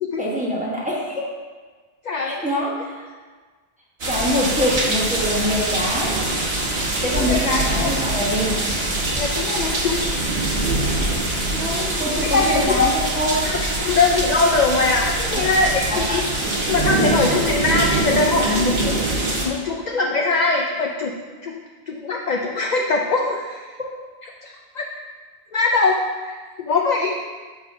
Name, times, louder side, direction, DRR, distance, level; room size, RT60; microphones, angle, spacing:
voice 1, 0.2-1.2 2.1-3.1 4.1-6.2 7.0-8.6 11.5-13.4 15.4-15.5 15.9-16.2, equal, 10° right, -5 dB, 1.1 m, -24 dB
voice 2, 2.0-2.4 7.2-7.9 9.1-10.0 12.3-12.9 13.4-16.2 16.6-19.0 19.4-21.1 21.4-21.6 21.9-23.7 24.4-24.9 25.5-27.2, left 3 dB, 55° left, 1 dB, 0.5 m, -22 dB
sound 1, 4.0-19.5, right 2 dB, 75° right, 1.3 m, -23 dB
6.5 x 3.6 x 5.0 m, 1.4 s
omnidirectional pair, 1.1 m